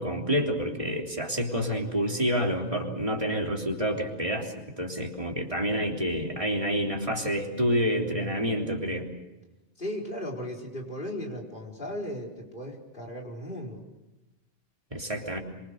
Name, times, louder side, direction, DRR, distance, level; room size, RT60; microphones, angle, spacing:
voice 1, 0.0-9.1 14.9-15.4, equal, 30° right, 1 dB, 3.6 m, -28 dB
voice 2, 9.8-13.8, equal, 50° left, 1 dB, 4.9 m, -36 dB
26.0 x 24.5 x 6.6 m, 1.0 s
omnidirectional pair, 1.2 m